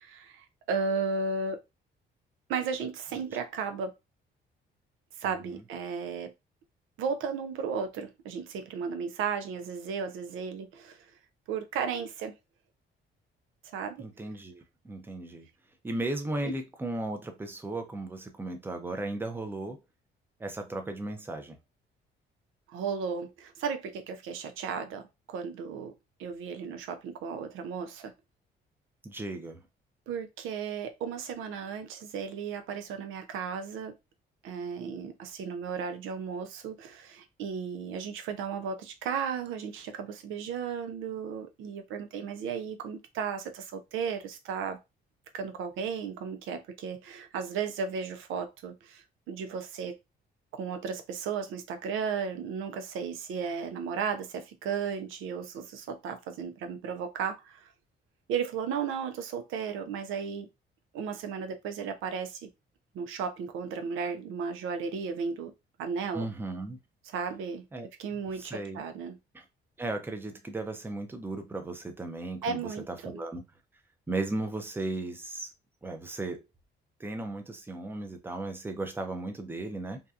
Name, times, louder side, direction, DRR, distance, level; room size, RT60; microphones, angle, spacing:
voice 1, 0.0-1.6 2.5-3.9 5.2-6.3 7.0-11.1 11.5-12.3 13.7-14.1 16.4-16.5 22.7-25.9 26.2-28.1 30.1-34.0 34.4-44.8 45.3-50.0 50.5-57.7 58.3-60.5 60.9-62.5 62.9-65.5 65.8-66.3 67.0-67.6 68.0-69.2 72.4-73.2, right 6 dB, 85° right, 0.5 m, -34 dB
voice 2, 5.2-5.6 14.0-15.4 15.8-19.8 20.4-21.6 29.0-29.6 66.1-66.8 67.7-67.9 68.4-68.8 69.3-69.4 69.8-73.4 74.1-75.5 75.8-76.4 77.0-80.0, right 2 dB, 10° right, 0.5 m, -36 dB
2.7 x 2.3 x 2.4 m
cardioid pair, 90°, 20 cm